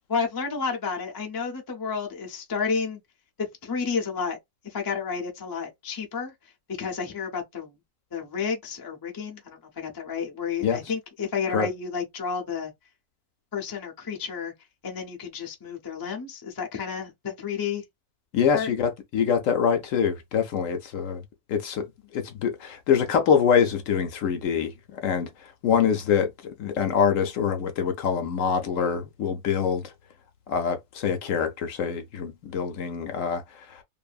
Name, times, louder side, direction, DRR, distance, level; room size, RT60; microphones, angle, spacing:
voice 1, 0.1-3.0 3.4-4.4 4.6-6.3 6.8-7.8 8.1-12.7 13.5-14.5 14.8-17.8 18.5-18.7, left 5 dB, 35° left, 0.3 m, -31 dB
voice 2, 18.3-21.2 21.5-21.9 22.1-25.3 25.6-29.9 30.5-33.8, left 7 dB, 65° left, 0.9 m, -25 dB
2.6 x 2.5 x 2.3 m
omnidirectional pair, 1.6 m